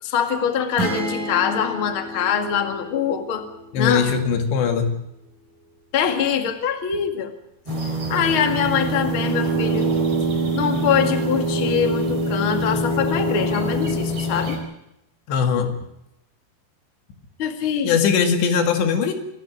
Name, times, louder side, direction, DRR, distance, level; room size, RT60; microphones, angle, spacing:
voice 1, 0.0-3.4 3.8-4.1 5.9-7.3 7.8-9.9 10.5-14.6 17.4-18.0, left 7 dB, 40° left, 6 dB, 2.2 m, -23 dB
sound 1, 0.8-4.5, right 1 dB, 55° right, 5.0 m, -32 dB
voice 2, 3.7-4.9 15.3-15.7 17.8-19.1, left 6 dB, 90° left, 6 dB, 4.4 m, -20 dB
sound 2, 7.7-14.6, right 2 dB, 35° right, 5.3 m, -24 dB
27.0 x 12.0 x 9.3 m, 0.84 s
omnidirectional pair, 4.8 m